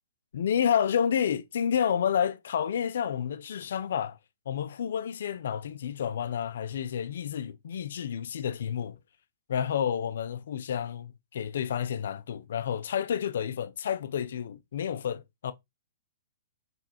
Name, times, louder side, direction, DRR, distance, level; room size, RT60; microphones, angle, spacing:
voice 1, 0.3-4.2 4.5-9.0 9.5-15.5, left 8 dB, 70° left, 0.5 m, -30 dB
4.9 x 3.2 x 2.9 m
hypercardioid pair, 145°, 0 cm